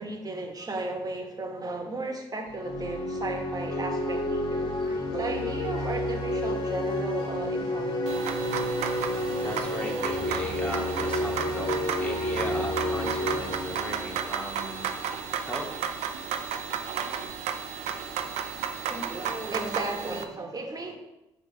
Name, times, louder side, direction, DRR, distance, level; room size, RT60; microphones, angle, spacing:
voice 1, 0.0-8.3 18.9-21.0, right 2 dB, 35° right, 2 dB, 1.9 m, -35 dB
sound 1, 2.5-15.1, left 1 dB, 45° left, 2.6 m, -30 dB
sound 2, 8.1-20.2, right 7 dB, 80° right, 0.6 m, -33 dB
voice 2, 9.1-15.0 15.4-15.7, equal, 10° left, -1 dB, 2.3 m, -37 dB
8.7 x 3.8 x 5.0 m, 0.92 s
supercardioid pair, 55°, 11 cm